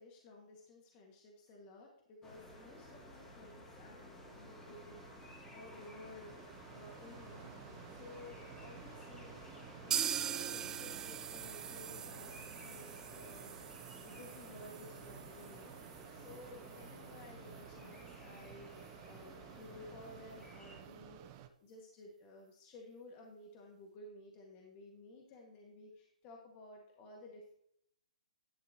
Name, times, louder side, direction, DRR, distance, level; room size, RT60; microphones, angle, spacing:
voice 1, 0.0-7.5 7.9-9.4 9.8-21.2 21.6-27.5, left 2 dB, 30° left, -1 dB, 1.9 m, -55 dB
sound 1, 2.2-20.8, equal, 10° left, 2.3 m, -54 dB
Mechanisms, 3.6-21.5, right 11 dB, 35° right, 0.7 m, -55 dB
sound 2, 9.9-17.6 17.9-18.0 18.3-18.4 18.9-19.0, right 9 dB, 15° right, 0.3 m, -43 dB
11.0 x 7.7 x 3.0 m, 0.71 s
hypercardioid pair, 145°, 4 cm